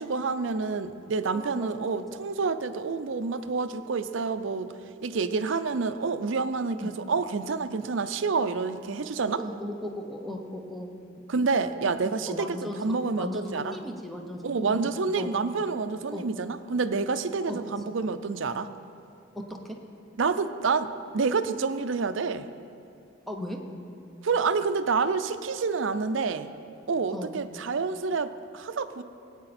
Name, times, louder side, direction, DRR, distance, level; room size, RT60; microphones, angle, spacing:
voice 1, 0.0-4.7 5.0-9.4 11.3-12.5 12.8-13.7 14.4-18.7 20.2-22.5 24.2-26.5 26.9-29.0, right 4 dB, 65° right, 10 dB, 0.5 m, -28 dB
voice 2, 1.3-1.9 6.8-6.9 9.4-10.9 12.0-14.8 15.2-15.3 16.1-16.3 17.5-17.6 19.3-19.8 23.3-23.6 27.1-27.4, left 1 dB, ahead, 1 dB, 0.9 m, -36 dB
17.5 x 8.8 x 4.3 m, 2.6 s
head